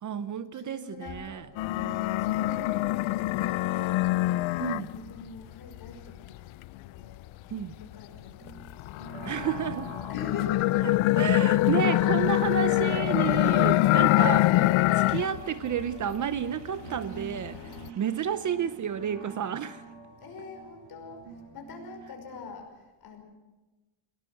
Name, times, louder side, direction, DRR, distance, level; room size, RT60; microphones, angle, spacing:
voice 1, 0.0-1.5 4.6-4.9 7.5-7.7 9.2-9.9 10.8-14.7 14.9-19.9, right 8 dB, 40° right, 0.7 m, -31 dB
voice 2, 0.5-8.9 10.1-10.9 11.7-12.4 20.2-23.2, left 4 dB, 45° left, 5.6 m, -44 dB
sound 1, 1.6-5.2 5.7-7.9 8.5-15.4 15.7-16.5 16.8-17.9, left 17 dB, 70° left, 0.6 m, -25 dB
sound 2, 8.4-22.5, right 4 dB, 80° right, 5.4 m, -47 dB
sound 3, 10.7-19.5, right 7 dB, 55° right, 2.1 m, -54 dB
22.0 x 18.5 x 7.8 m
cardioid pair, 155°, 49 cm